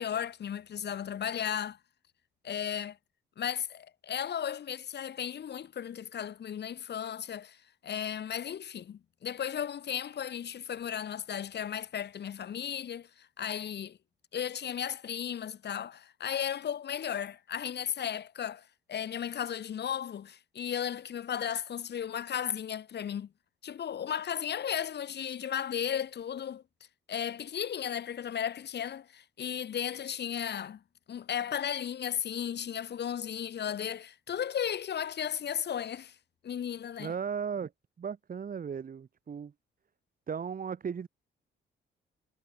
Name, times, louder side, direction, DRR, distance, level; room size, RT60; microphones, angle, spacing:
voice 1, 0.0-1.8 2.4-3.0 3.4-7.6 7.8-14.0 14.3-23.3 23.6-26.6 27.1-30.8 31.1-36.2 36.4-37.1, left 9 dB, 60° left, 3.6 m, -35 dB
voice 2, 37.0-37.7 38.0-39.5 40.3-41.1, right 7 dB, 45° right, 3.3 m, -36 dB
cardioid pair, 90°, 20 cm